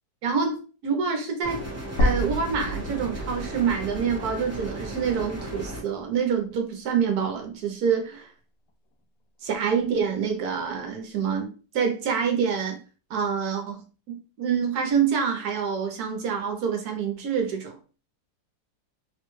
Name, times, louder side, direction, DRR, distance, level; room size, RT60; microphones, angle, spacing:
voice 1, 0.2-1.6 2.0-8.3 9.4-12.8 13.1-17.8, right 6 dB, 65° right, 1.1 m, -26 dB
sound 1, 1.4-5.8, right 1 dB, 20° right, 0.4 m, -36 dB
sound 2, 2.0-6.1 6.5-6.6 8.0-8.1, equal, 75° left, 1.1 m, -30 dB
3.6 x 2.1 x 3.0 m
omnidirectional pair, 1.9 m